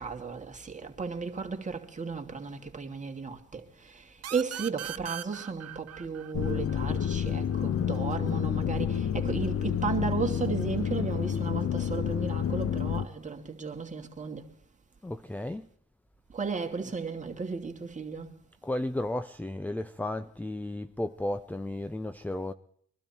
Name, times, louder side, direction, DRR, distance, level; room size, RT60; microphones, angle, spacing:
voice 1, 0.0-4.0 4.3-14.4 16.3-18.3, right 5 dB, 25° right, 2.7 m, -34 dB
sound 1, 4.2-7.6, right 11 dB, 55° right, 0.8 m, -40 dB
sound 2, 6.3-13.1, left 8 dB, 50° left, 0.8 m, -29 dB
voice 2, 15.0-15.7 18.6-22.5, left 1 dB, 5° left, 0.7 m, -34 dB
23.5 x 12.5 x 4.5 m
cardioid pair, 90°, 30 cm